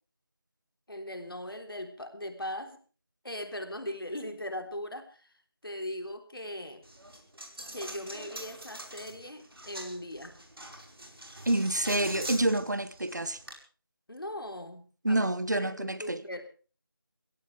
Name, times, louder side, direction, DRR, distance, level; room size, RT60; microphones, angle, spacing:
voice 1, 0.9-2.8 3.2-5.3 5.6-6.8 7.7-10.4 14.1-16.4, left 1 dB, 75° left, 3.6 m, -39 dB
Coin (dropping), 6.8-13.5, right 1 dB, 90° right, 5.3 m, -44 dB
voice 2, 11.4-13.4 15.0-16.2, right 1 dB, 50° right, 1.2 m, -28 dB
22.0 x 16.5 x 3.4 m
figure-of-eight pair, 180°, 12 cm